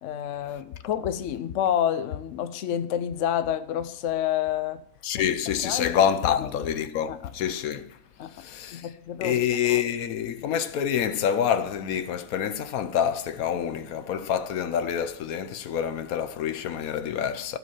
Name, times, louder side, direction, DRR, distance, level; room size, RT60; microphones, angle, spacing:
voice 1, 0.0-4.8 5.1-5.3 5.6-5.9 6.3-6.5 7.1-7.2 8.2-8.3 8.7-9.4 9.7-9.8, left 10 dB, 65° left, 0.9 m, -28 dB
voice 2, 5.0-7.9 8.4-8.9 9.2-17.6, left 9 dB, 85° left, 1.2 m, -27 dB
15.5 x 5.3 x 7.3 m
omnidirectional pair, 1.5 m